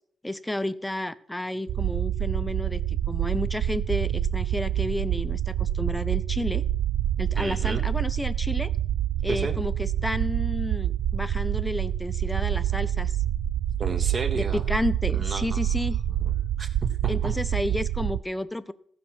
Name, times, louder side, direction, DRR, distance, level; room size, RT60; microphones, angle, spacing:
voice 1, 0.2-6.6 7.2-8.7 9.2-13.2 14.3-16.0 17.1-18.7, left 1 dB, 10° left, 14 dB, 0.7 m, -31 dB
sound 1, 1.7-18.2, right 11 dB, 75° right, 0.4 m, -27 dB
voice 2, 7.4-7.8 9.3-9.6 13.8-14.6 15.1-15.6 16.2-16.3 16.6-17.3, right 4 dB, 40° right, 6 dB, 1.7 m, -32 dB
15.0 x 6.1 x 6.3 m, 0.64 s
cardioid pair, 80°, 0 cm